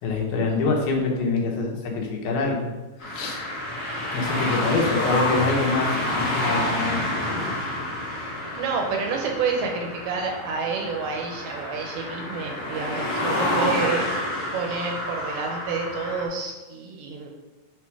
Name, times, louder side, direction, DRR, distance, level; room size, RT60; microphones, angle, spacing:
voice 1, 0.0-2.7 3.0-3.4 4.1-7.5, left 3 dB, 85° left, -1 dB, 3.0 m, -25 dB
sound 1, 3.0-16.2, left 1 dB, 40° left, 2.7 m, -28 dB
voice 2, 8.6-14.1 14.5-17.3, right 5 dB, 75° right, 2 dB, 2.2 m, -29 dB
7.5 x 3.6 x 4.7 m, 1.2 s
omnidirectional pair, 4.3 m